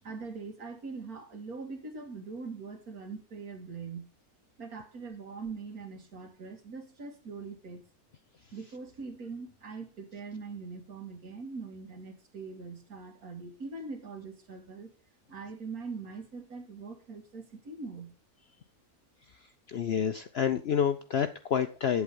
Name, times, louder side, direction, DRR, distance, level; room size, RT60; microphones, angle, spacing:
voice 1, 0.0-4.1 4.6-7.8 8.5-14.9 15.3-18.1, right 4 dB, 75° right, 5 dB, 2.3 m, -42 dB
voice 2, 19.3-22.0, left 8 dB, 55° left, 8 dB, 0.7 m, -29 dB
8.5 x 8.2 x 5.3 m, 0.35 s
omnidirectional pair, 1.6 m